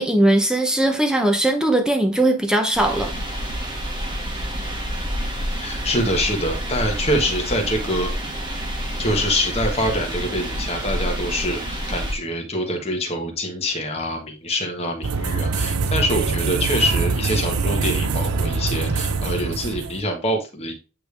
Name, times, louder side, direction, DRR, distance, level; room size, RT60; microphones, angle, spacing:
voice 1, 0.0-3.1, right 1 dB, 5° right, 0.7 m, -19 dB
Ambient(light wind), 2.7-12.1, equal, 20° right, 1.4 m, -28 dB
voice 2, 5.6-8.1 9.0-20.7, equal, 30° left, 1.4 m, -25 dB
sound 1, 15.0-20.0, right 4 dB, 80° right, 0.6 m, -24 dB
8.8 x 3.3 x 3.4 m
head